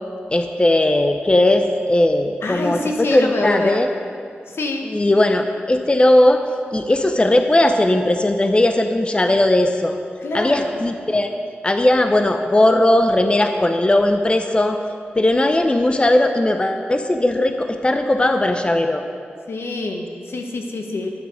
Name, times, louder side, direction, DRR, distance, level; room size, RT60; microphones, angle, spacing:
voice 1, 0.3-3.9 4.8-6.4 6.7-10.0 10.3-11.3 11.6-14.8 15.1-19.0, left 1 dB, 25° left, 6 dB, 0.7 m, -17 dB
voice 2, 2.4-3.8 4.5-4.9 10.2-10.7 19.5-21.1, left 2 dB, 75° left, 2 dB, 1.2 m, -25 dB
11.5 x 6.7 x 6.4 m, 2.3 s
cardioid pair, 55°, 4 cm